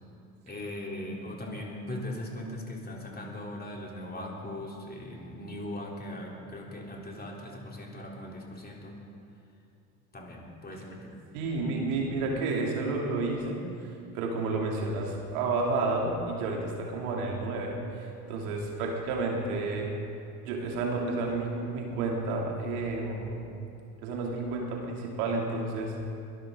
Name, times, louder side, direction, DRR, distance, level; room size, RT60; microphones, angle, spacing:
voice 1, 0.5-9.0 10.1-11.2, left 1 dB, 20° left, -2 dB, 3.7 m, -39 dB
voice 2, 11.3-13.6 14.1-19.9 20.4-23.4 24.0-25.9, right 3 dB, 70° right, -1 dB, 3.0 m, -31 dB
22.0 x 12.5 x 3.9 m, 2.6 s
hypercardioid pair, 70°, 46 cm